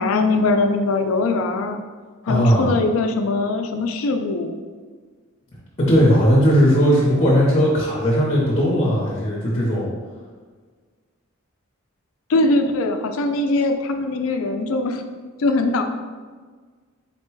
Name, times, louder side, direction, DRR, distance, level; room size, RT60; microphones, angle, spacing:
voice 1, 0.0-1.8 2.2-4.6 12.3-15.0 15.4-15.8, left 2 dB, 75° left, 6 dB, 0.4 m, -21 dB
voice 2, 2.3-2.8 5.8-9.9, equal, 30° left, -5 dB, 0.8 m, -17 dB
4.2 x 2.2 x 4.5 m, 1.5 s
head